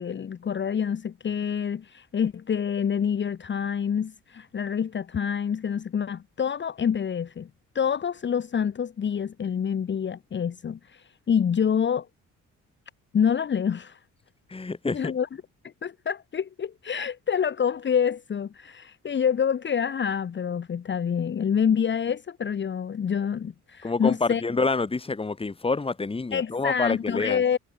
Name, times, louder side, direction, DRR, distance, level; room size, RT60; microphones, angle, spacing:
voice 1, 0.0-7.5 7.7-12.1 13.1-14.0 14.9-15.3 15.6-24.4 26.3-27.6, left 7 dB, 40° left, 1.0 m, -27 dB
voice 2, 14.5-15.1 23.8-27.4, left 3 dB, 20° left, 1.5 m, -27 dB
cardioid pair, 90°, 30 cm